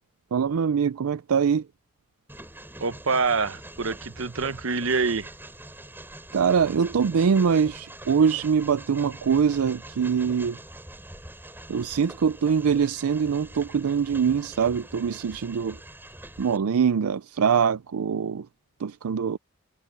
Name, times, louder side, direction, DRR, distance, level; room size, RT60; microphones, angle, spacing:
voice 1, 0.3-1.6 6.3-10.6 11.7-15.8 16.4-18.5 18.8-19.4, right 6 dB, 85° right, 0.4 m, -23 dB
Train, 2.3-16.6, right 1 dB, 10° right, 6.9 m, -44 dB
voice 2, 2.8-5.3, right 4 dB, 65° right, 1.0 m, -26 dB
head